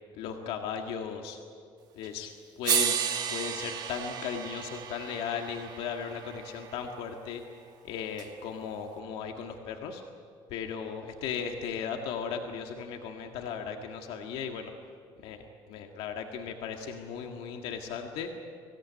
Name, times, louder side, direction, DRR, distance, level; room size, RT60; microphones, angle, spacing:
voice 1, 0.2-1.4 2.0-2.3 2.6-2.9 3.3-7.4 7.8-10.0 10.5-14.7 15.2-18.3, left 7 dB, 80° left, 3 dB, 1.8 m, -36 dB
sound 1, 2.0-2.1 2.6-6.8 8.2-8.3, right 8 dB, 45° right, 1.9 m, -33 dB
24.0 x 17.0 x 9.7 m, 2.3 s
cardioid pair, 155°, 10 cm